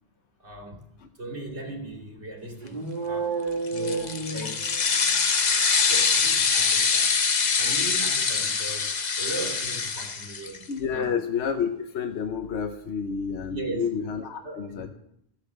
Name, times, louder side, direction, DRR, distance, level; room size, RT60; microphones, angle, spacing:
voice 1, 0.4-0.8 1.2-3.4 3.7-4.8 5.8-7.2 7.5-10.6 10.9-11.2 13.3-13.9 14.4-14.9, right 2 dB, 80° right, 2.9 m, -38 dB
sound 1, 2.6-5.2, right 4 dB, 45° right, 2.4 m, -31 dB
sound 2, 3.7-10.6, left 5 dB, 45° left, 0.9 m, -24 dB
voice 2, 10.7-14.9, left 6 dB, 75° left, 1.1 m, -29 dB
15.0 x 8.3 x 6.8 m
omnidirectional pair, 1.1 m